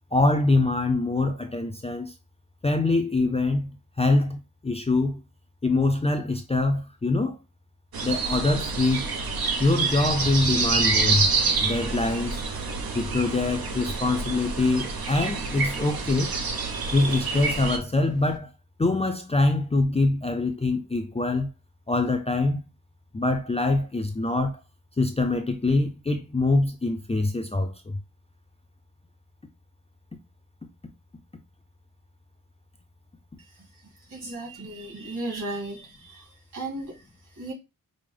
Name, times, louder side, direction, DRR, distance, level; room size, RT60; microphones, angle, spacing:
voice 1, 0.1-2.1 2.6-3.7 4.0-5.2 5.6-7.4 8.0-9.0 9.6-11.3 11.6-12.4 12.9-16.3 16.9-18.5 18.8-21.5 21.9-22.6 23.1-24.6 25.0-28.0, left 2 dB, 20° left, 0.4 m, -24 dB
sound 1, 7.9-17.8, right 4 dB, 85° right, 0.8 m, -27 dB
Thunder / Rain, 10.0-18.4, right 3 dB, 45° right, 0.6 m, -42 dB
voice 2, 34.1-36.9 37.4-37.5, right 2 dB, 60° right, 2.3 m, -35 dB
5.2 x 2.0 x 3.2 m
wide cardioid pair, 125°, 35 cm